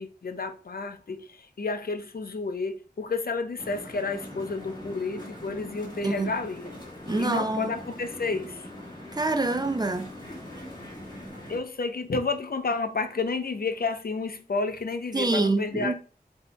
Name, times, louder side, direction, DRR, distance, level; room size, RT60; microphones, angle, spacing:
voice 1, 0.0-6.8 7.2-8.7 11.5-15.9, left 4 dB, 65° left, 0.5 m, -31 dB
sound 1, 3.6-11.6, left 1 dB, 25° left, 1.9 m, -42 dB
voice 2, 7.1-7.7 9.1-10.1 15.1-15.9, right 2 dB, 25° right, 0.4 m, -26 dB
8.0 x 2.7 x 2.2 m
wide cardioid pair, 55°, 17 cm